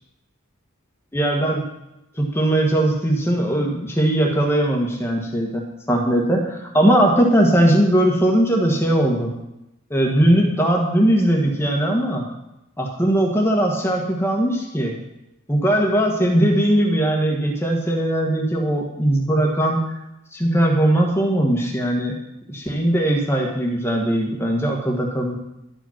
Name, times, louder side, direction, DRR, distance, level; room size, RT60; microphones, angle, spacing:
voice 1, 1.1-1.6 2.2-5.6 5.9-9.3 9.9-12.2 12.8-15.0 15.5-20.0 20.3-22.1 22.5-25.4, right 1 dB, 10° left, 0 dB, 1.3 m, -19 dB
11.0 x 5.0 x 5.9 m, 0.90 s
head